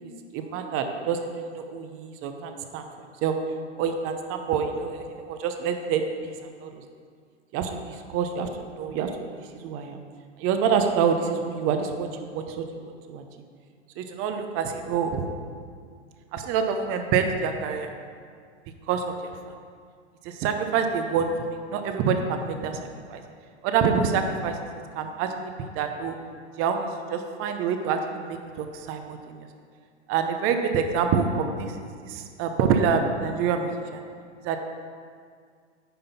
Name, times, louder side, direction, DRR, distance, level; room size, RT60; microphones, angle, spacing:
voice 1, 0.3-2.9 3.2-3.3 3.8-6.3 6.6-6.8 7.5-8.5 8.8-9.3 9.6-10.0 10.4-12.6 13.1-13.2 14.0-15.3 16.3-17.9 18.9-19.0 20.2-21.3 21.7-22.7 23.1-23.2 23.6-24.6 25.0-26.2 26.6-29.4 30.1-34.0 34.4-34.6, right 6 dB, 40° right, 6 dB, 0.8 m, -26 dB
9.5 x 3.8 x 5.7 m, 2.1 s
hypercardioid pair, 115°, 35 cm